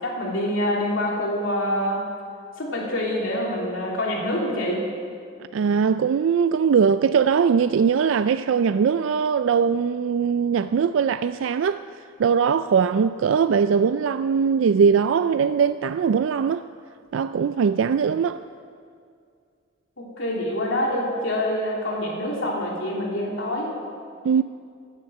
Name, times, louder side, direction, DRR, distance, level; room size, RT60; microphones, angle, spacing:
voice 1, 0.0-2.1 2.6-4.8 20.0-23.8, left 1 dB, 85° left, 2.9 m, -26 dB
voice 2, 5.5-11.8 12.2-16.7 17.1-18.4 24.2-24.4, right 6 dB, 85° right, 0.3 m, -21 dB
16.5 x 10.5 x 6.7 m
head